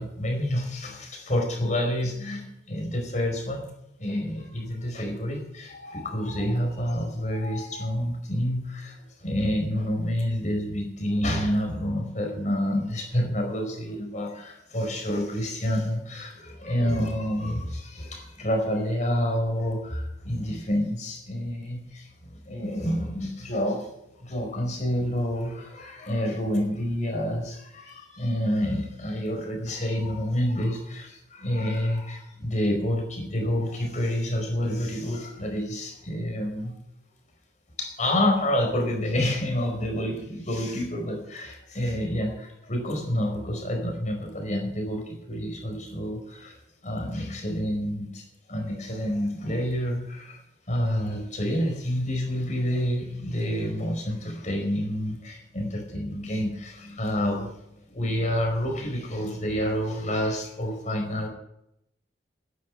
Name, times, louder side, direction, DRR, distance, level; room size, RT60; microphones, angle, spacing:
voice 1, 0.0-3.7 4.0-36.7 37.8-48.2 48.5-50.4 50.7-57.5 57.9-61.3, equal, 45° left, 2 dB, 4.8 m, -28 dB
11.5 x 10.0 x 9.2 m, 0.79 s
head